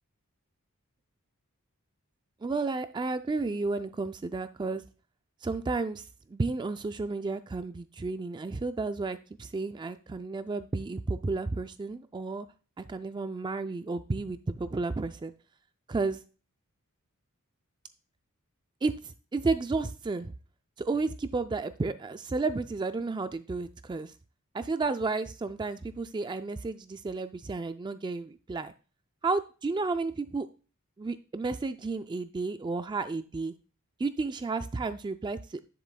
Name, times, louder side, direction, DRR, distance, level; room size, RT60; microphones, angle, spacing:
voice 1, 2.4-4.8 5.4-6.0 6.3-12.5 12.8-15.3 15.9-16.2 18.8-20.3 20.8-24.1 24.5-28.7 29.2-30.5 31.0-33.5 34.0-35.6, right 3 dB, 20° right, 10 dB, 0.3 m, -32 dB
10.5 x 6.9 x 2.2 m, 0.35 s
head